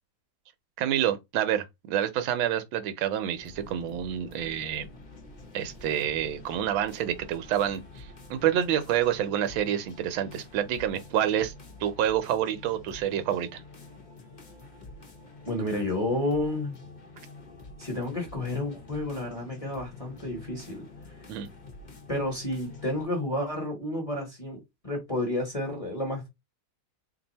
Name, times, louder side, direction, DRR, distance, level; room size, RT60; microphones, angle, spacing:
voice 1, 0.8-4.9 5.5-11.5 11.8-13.6 21.3-21.5, right 10 dB, 80° right, 1.5 m, -28 dB
sound 1, 3.4-23.0, left 3 dB, 35° left, 0.7 m, -48 dB
voice 2, 15.4-16.8 17.8-20.9 22.1-26.3, left 1 dB, 20° left, 1.1 m, -31 dB
3.2 x 2.6 x 4.0 m
omnidirectional pair, 2.2 m